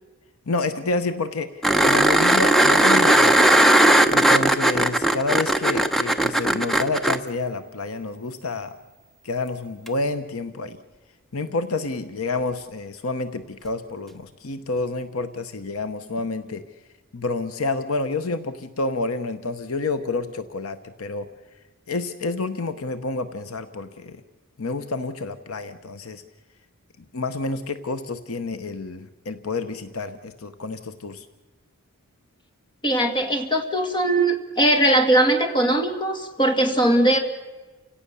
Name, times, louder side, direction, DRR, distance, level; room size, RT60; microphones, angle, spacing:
voice 1, 0.5-3.5 4.1-8.7 9.2-10.8 11.3-16.6 17.1-21.3 21.9-24.2 24.6-26.2 27.1-31.3, left 3 dB, 70° left, 11 dB, 0.9 m, -29 dB
sound 1, 1.6-7.2 9.9-10.0, right 1 dB, ahead, 0.9 m, -17 dB
voice 2, 32.8-37.2, right 1 dB, 20° left, 5 dB, 2.2 m, -20 dB
30.0 x 17.0 x 6.9 m, 1.2 s
head